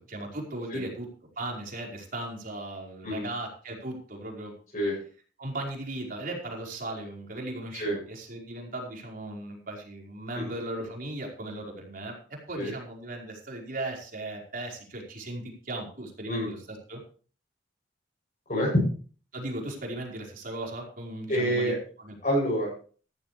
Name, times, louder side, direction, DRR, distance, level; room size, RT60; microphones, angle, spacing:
voice 1, 0.1-1.1 1.4-4.5 5.4-12.1 12.5-17.0 19.3-22.1, right 1 dB, 50° right, 0 dB, 5.0 m, -37 dB
voice 2, 21.3-21.8 22.2-22.7, equal, 45° left, -7 dB, 8.0 m, -27 dB
14.5 x 14.5 x 3.3 m, 0.40 s
head